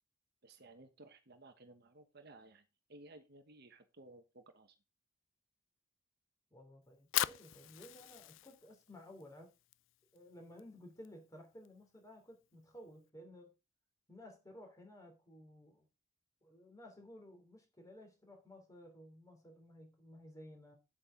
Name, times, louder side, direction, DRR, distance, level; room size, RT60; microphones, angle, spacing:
voice 1, 0.4-4.8, right 2 dB, 50° right, 1.2 m, -58 dB
voice 2, 6.5-9.5 10.1-13.5 14.1-15.8 16.4-20.7, left 1 dB, 15° left, 3.1 m, -55 dB
Fire, 6.8-13.1, left 13 dB, 60° left, 0.4 m, -43 dB
8.9 x 8.5 x 3.7 m
head